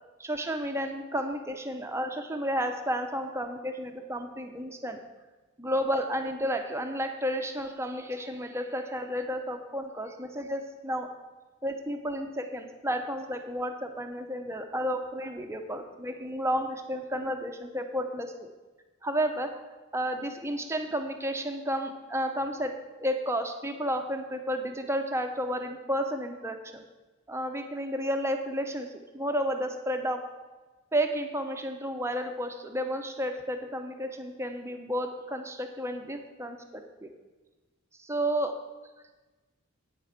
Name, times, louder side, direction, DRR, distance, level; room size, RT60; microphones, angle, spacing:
voice 1, 0.2-5.0 5.6-11.1 11.6-18.5 19.0-19.5 19.9-26.8 27.3-30.2 30.9-37.1 38.0-38.6, equal, 10° right, 5 dB, 0.7 m, -32 dB
8.9 x 8.5 x 5.9 m, 1.2 s
head